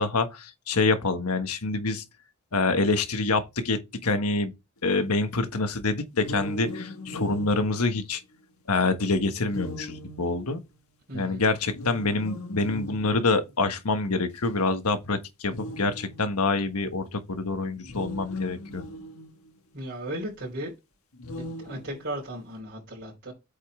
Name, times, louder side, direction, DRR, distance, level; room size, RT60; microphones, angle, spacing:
voice 1, 0.0-2.0 2.5-4.5 4.8-8.2 8.7-10.6 11.1-18.8, left 3 dB, 85° left, 1.4 m, -26 dB
sound 1, 6.1-8.6 9.5-10.7 11.7-13.5 14.4-14.5 15.4-16.5 17.8-19.6 21.1-22.4, left 1 dB, 70° left, 1.4 m, -39 dB
voice 2, 11.1-11.5 19.7-20.7 21.4-23.3, right 1 dB, 50° right, 3.8 m, -36 dB
8.4 x 5.5 x 3.3 m
head